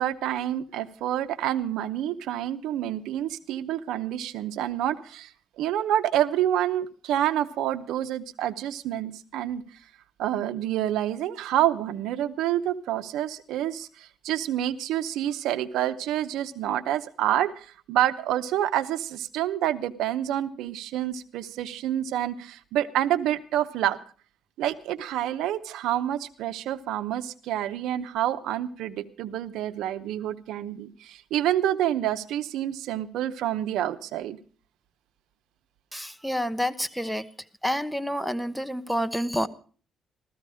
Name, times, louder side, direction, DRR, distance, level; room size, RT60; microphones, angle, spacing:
voice 1, 0.0-5.3 5.6-9.6 10.2-24.0 24.6-34.4, right 12 dB, 90° right, 13 dB, 0.8 m, -28 dB
voice 2, 35.9-37.3 37.6-39.5, equal, ahead, 12 dB, 1.0 m, -28 dB
15.0 x 14.0 x 4.9 m, 0.40 s
cardioid pair, 90°, 0 cm